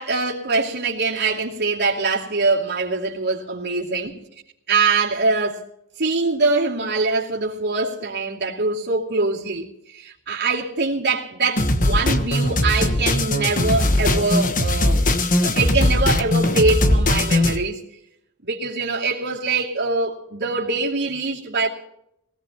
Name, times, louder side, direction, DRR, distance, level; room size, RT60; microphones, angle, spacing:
voice 1, 0.0-4.2 4.7-5.6 6.0-15.0 15.4-17.8 18.4-21.7, right 3 dB, 50° right, 2.6 m, -23 dB
sound 1, 11.6-17.6, left 1 dB, 40° left, 1.3 m, -19 dB
21.0 x 17.5 x 3.0 m
head